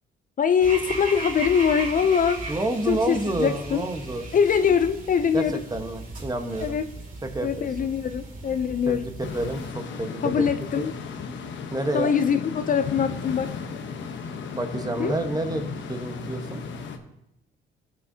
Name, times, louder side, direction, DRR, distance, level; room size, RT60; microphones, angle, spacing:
voice 1, 0.4-2.5 2.9-3.8 4.3-5.6 6.6-6.8 7.4-9.1 10.2-10.9 11.9-13.5 15.0-15.2, left 7 dB, 45° left, 10 dB, 0.5 m, -23 dB
sound 1, 0.6-9.7, right 2 dB, 45° right, 2.6 m, -37 dB
voice 2, 2.5-4.3 5.3-6.8 7.2-7.9 8.9-10.8 11.7-12.2 14.5-16.6, right 2 dB, 20° right, 6 dB, 1.2 m, -29 dB
sound 2, 9.2-17.0, left 5 dB, 70° left, 1.0 m, -35 dB
17.5 x 6.3 x 2.8 m, 0.82 s
cardioid pair, 90°, 20 cm